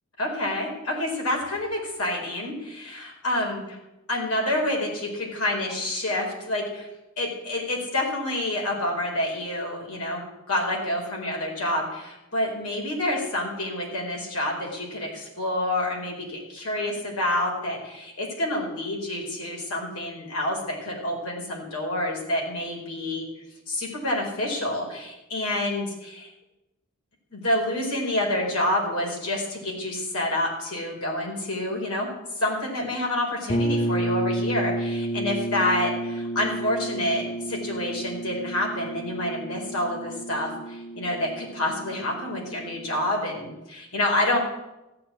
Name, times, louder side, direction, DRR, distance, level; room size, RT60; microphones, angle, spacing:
voice 1, 0.2-3.6 4.1-6.9 7.2-23.2 23.7-26.3 27.3-32.1 32.3-44.4, left 1 dB, 90° left, -1 dB, 4.8 m, -28 dB
sound 1, 33.5-43.2, right 1 dB, 30° left, 1.1 m, -31 dB
15.0 x 8.6 x 8.7 m, 0.96 s
head